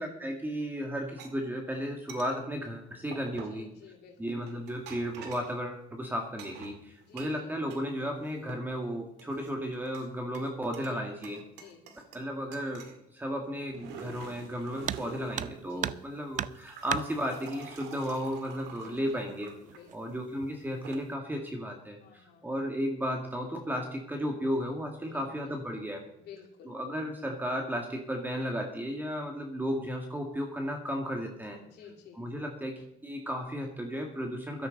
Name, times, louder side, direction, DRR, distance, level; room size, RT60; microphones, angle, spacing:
voice 1, 0.0-3.7 4.2-11.4 12.1-12.9 13.1-19.5 19.9-26.0 26.7-31.6 32.2-34.7, equal, 10° right, 2 dB, 1.9 m, -34 dB
sound 1, 1.2-1.3 2.1-2.3 3.1-3.6 4.4-5.6 6.4-7.8 8.2-8.8 9.2-10.1 10.3-11.0 11.2-12.3 12.5-13.0 13.5-15.6 16.4-19.8 20.6-21.0, right 6 dB, 90° right, 2.0 m, -47 dB
voice 2, 3.5-4.4 7.0-7.6 10.9-11.8 15.7-16.0 18.6-19.2 19.6-20.1 22.0-22.5 25.1-25.6 26.2-26.8 31.6-32.2, left 7 dB, 75° left, 0 dB, 2.9 m, -53 dB
sound 2, 14.8-15.1 15.4-16.1 16.4-17.1 18.3-18.4 18.8-18.9 19.7-20.1 20.4-20.8, right 10 dB, 50° right, 0.5 m, -34 dB
15.5 x 13.0 x 3.9 m, 0.84 s
cardioid pair, 110°, 17 cm